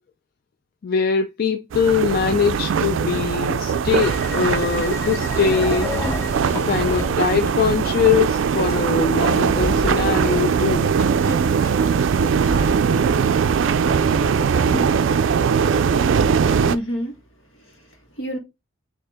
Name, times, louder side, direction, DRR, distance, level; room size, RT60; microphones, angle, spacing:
voice 1, 0.8-5.9 6.5-10.9, left 6 dB, 50° left, 0.4 m, -22 dB
sound 1, 1.7-16.8, right 6 dB, 70° right, 0.3 m, -20 dB
sound 2, 4.0-14.8, left 1 dB, 15° left, 0.7 m, -33 dB
sound 3, 9.0-10.9 11.9-13.4, right 1 dB, 20° right, 0.9 m, -31 dB
voice 2, 16.6-17.1 17.5-18.4, equal, 75° left, 1.5 m, -29 dB
4.3 x 2.8 x 3.5 m
head